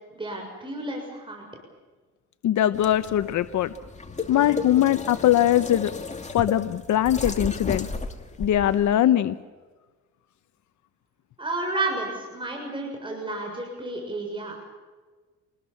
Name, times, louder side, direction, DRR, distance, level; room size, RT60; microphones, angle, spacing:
voice 1, 0.1-1.5 11.4-14.7, right 2 dB, 15° right, 1 dB, 6.9 m, -31 dB
voice 2, 2.4-3.7 4.3-5.9 6.3-7.9 8.4-9.3, left 12 dB, 70° left, 11 dB, 1.0 m, -21 dB
sound 1, 2.7-8.9, left 3 dB, 25° left, 2.5 m, -34 dB
28.5 x 20.5 x 7.3 m, 1.3 s
cardioid pair, 90°, 30 cm